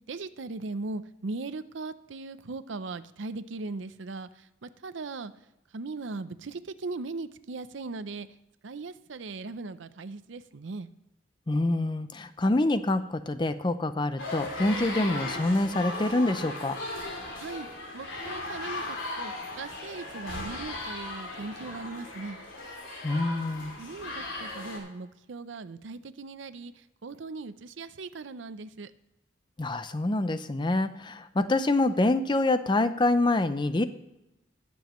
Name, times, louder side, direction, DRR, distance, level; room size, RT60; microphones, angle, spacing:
voice 1, 0.1-5.3 5.7-8.3 8.6-10.9 17.4-17.7 17.9-22.4 23.8-28.9, right 3 dB, 75° right, 13 dB, 0.6 m, -39 dB
voice 2, 11.5-16.8 23.0-23.8 29.6-33.9, left 2 dB, 25° left, 12 dB, 0.5 m, -26 dB
sound 1, 14.2-24.8, left 2 dB, 90° left, 2.8 m, -37 dB
21.0 x 7.1 x 3.1 m, 0.94 s
head